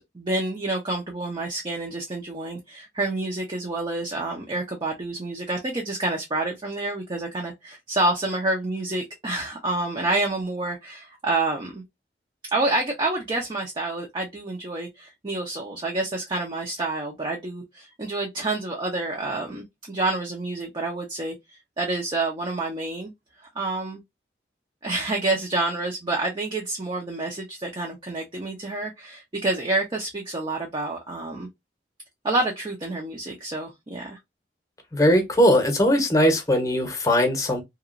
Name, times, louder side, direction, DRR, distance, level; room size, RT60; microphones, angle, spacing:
voice 1, 0.0-11.8 12.5-23.1 23.4-24.0 24.8-31.5 32.2-34.2, right 2 dB, 30° right, 0.6 m, -28 dB
voice 2, 34.9-37.6, equal, 20° left, 0.8 m, -20 dB
2.9 x 2.4 x 2.4 m
head